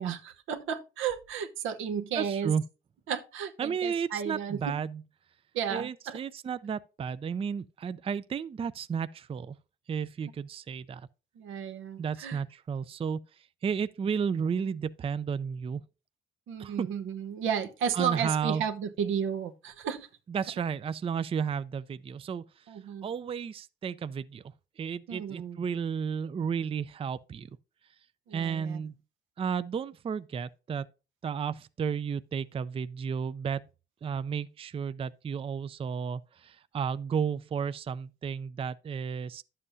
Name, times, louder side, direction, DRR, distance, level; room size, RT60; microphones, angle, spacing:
voice 1, 0.0-2.5 3.1-4.8 5.5-6.2 11.4-12.4 16.5-20.1 22.7-23.1 25.1-25.6 28.3-28.8, right 7 dB, 90° right, 1.0 m, -33 dB
voice 2, 2.1-2.6 3.6-5.0 5.7-9.6 9.9-11.1 12.0-13.2 13.6-15.8 16.6-16.9 17.9-18.6 20.3-22.4 23.0-24.4 24.8-27.5 28.3-28.9 29.4-30.9 31.2-33.6 34.0-39.4, right 6 dB, 30° right, 0.4 m, -33 dB
11.0 x 7.5 x 2.7 m
cardioid pair, 90°, 20 cm